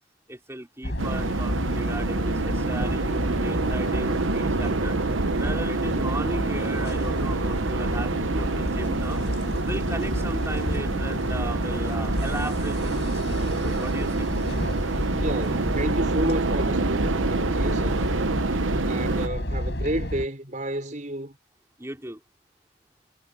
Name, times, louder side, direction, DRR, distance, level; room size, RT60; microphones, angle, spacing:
voice 1, 0.3-5.0 5.4-9.2 9.6-14.3 21.8-22.2, right 1 dB, 15° right, 5.0 m, -36 dB
sound 1, 0.8-20.3, equal, 65° left, 5.7 m, -29 dB
sound 2, 1.0-19.3, right 3 dB, 90° right, 0.8 m, -28 dB
voice 2, 15.1-18.0 18.8-21.4, right 1 dB, 40° right, 5.6 m, -31 dB
head